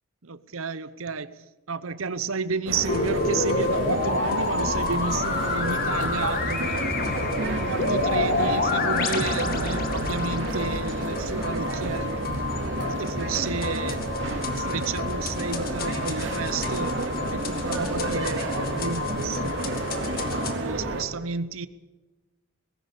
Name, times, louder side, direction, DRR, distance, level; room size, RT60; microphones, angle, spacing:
voice 1, 0.2-7.0 7.4-12.3 12.6-14.0 14.4-17.0 17.3-18.4 18.7-19.7 20.2-21.7, right 5 dB, 75° right, 0.9 m, -31 dB
sound 1, 2.7-21.0, right 2 dB, 55° right, 2.9 m, -30 dB
sound 2, 2.9-20.5, left 3 dB, 45° left, 2.0 m, -29 dB
19.5 x 16.5 x 8.3 m
head